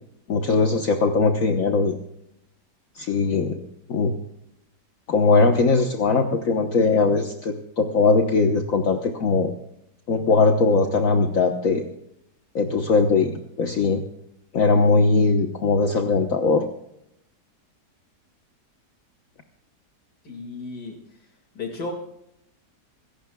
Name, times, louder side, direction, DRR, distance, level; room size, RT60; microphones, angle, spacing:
voice 1, 0.3-2.0 2.9-4.1 5.1-9.5 10.1-11.9 12.5-14.0 14.5-16.6, left 3 dB, 55° left, 4 dB, 1.5 m, -20 dB
voice 2, 20.2-21.0 21.5-21.9, left 3 dB, 75° left, 1 dB, 2.7 m, -33 dB
26.5 x 15.0 x 2.3 m, 0.80 s
omnidirectional pair, 1.8 m